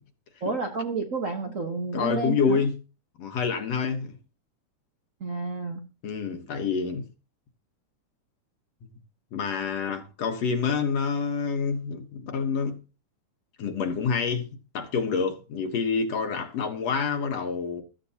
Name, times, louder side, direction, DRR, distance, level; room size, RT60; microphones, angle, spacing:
voice 1, 0.4-2.6 5.2-5.8, right 4 dB, 50° right, 0.9 m, -30 dB
voice 2, 1.8-2.8 3.2-4.2 6.0-7.1 9.3-12.8 13.6-14.5 14.7-17.8, left 5 dB, 60° left, 2.3 m, -27 dB
15.5 x 14.0 x 2.9 m
omnidirectional pair, 3.6 m